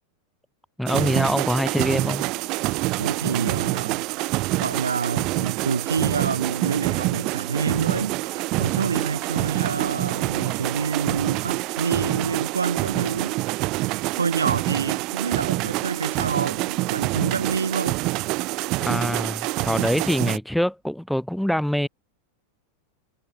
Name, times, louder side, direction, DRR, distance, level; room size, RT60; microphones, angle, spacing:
voice 1, 0.8-2.2 18.8-21.9, equal, ahead, 3.3 m, -24 dB
sound 1, 0.9-20.4, right 23 dB, 40° right, 0.9 m, -26 dB
voice 2, 3.0-4.0 4.4-13.4 14.2-18.0, right 5 dB, 75° right, 7.6 m, -27 dB
figure-of-eight pair, 90°, 0 cm